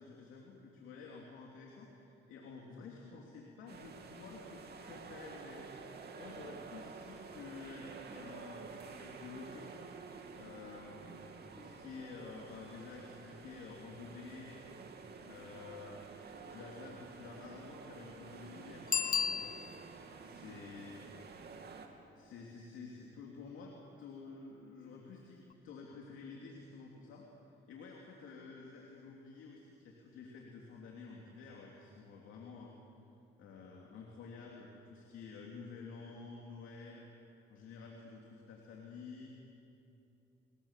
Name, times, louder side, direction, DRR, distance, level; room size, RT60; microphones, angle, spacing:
voice 1, 0.0-5.7 6.2-9.7 10.4-14.7 15.2-19.6 19.8-21.1 22.1-27.3 27.7-32.7 33.4-37.1 37.5-39.3, left 4 dB, 85° left, -1 dB, 2.9 m, -51 dB
sound 1, 3.7-21.9, right 5 dB, 55° right, 2.7 m, -50 dB
Bicycle bell, 18.9-20.1 25.5-25.6, left 7 dB, 45° left, 0.7 m, -34 dB
28.5 x 21.0 x 7.5 m, 2.8 s
cardioid pair, 90°, 20 cm